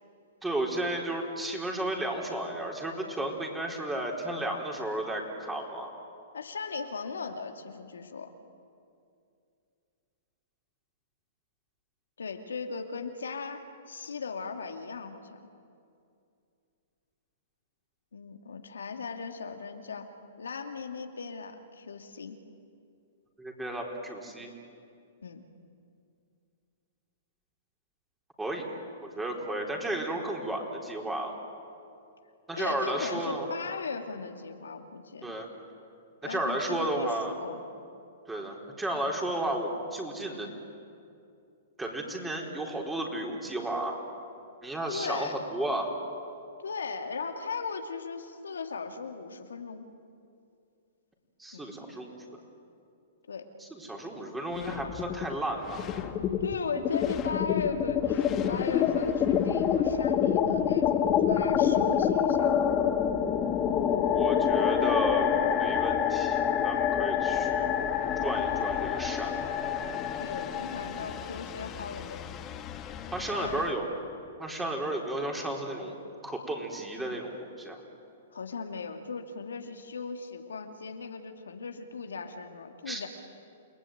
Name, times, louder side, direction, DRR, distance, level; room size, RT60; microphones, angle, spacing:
voice 1, 0.4-5.9 23.4-24.5 28.4-28.7 29.0-31.4 32.5-33.5 35.2-35.5 36.2-37.4 38.3-40.5 41.8-44.0 44.6-45.9 51.4-52.1 53.6-55.9 64.1-65.3 65.6-67.7 68.2-69.4 73.1-73.9 74.4-75.9 76.2-77.8 82.9-83.1, right 1 dB, 10° right, 1 dB, 4.3 m, -33 dB
voice 2, 6.3-8.3 12.2-15.4 18.1-20.1 20.4-22.4 25.2-25.4 32.6-35.3 36.2-37.6 44.9-45.4 46.6-49.9 51.5-51.8 53.3-53.5 56.4-62.6 70.2-72.2 73.3-73.9 78.3-83.1, left 5 dB, 90° left, 5 dB, 2.4 m, -37 dB
sound 1, 54.6-55.4 55.6-73.7, left 8 dB, 30° left, 1.7 m, -27 dB
29.5 x 19.5 x 9.3 m, 2.5 s
hypercardioid pair, 130°, 0 cm